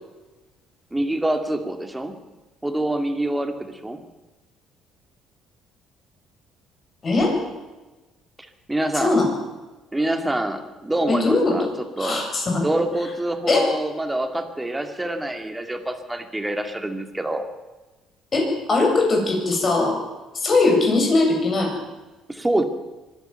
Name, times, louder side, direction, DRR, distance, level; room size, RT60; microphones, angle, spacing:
voice 1, 0.9-2.2 2.6-4.0 8.7-9.2 9.9-11.7 12.0-12.2 12.6-17.5 22.3-22.6, right 1 dB, 10° right, 6 dB, 2.5 m, -26 dB
voice 2, 7.0-7.4 8.9-9.3 11.1-12.8 13.5-13.7 18.3-20.0 20.3-21.7, left 3 dB, 35° left, 1 dB, 7.9 m, -20 dB
24.0 x 11.5 x 9.2 m, 1.1 s
cardioid pair, 115°, 0 cm